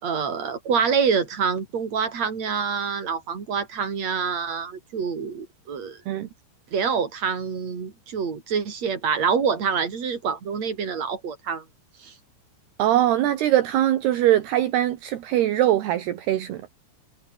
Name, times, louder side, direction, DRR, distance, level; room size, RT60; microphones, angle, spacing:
voice 1, 0.0-6.0 6.7-11.6 12.0-12.1, right 6 dB, 40° right, 5.0 m, -26 dB
voice 2, 12.8-16.6, right 12 dB, 70° right, 3.4 m, -22 dB
omnidirectional pair, 5.1 m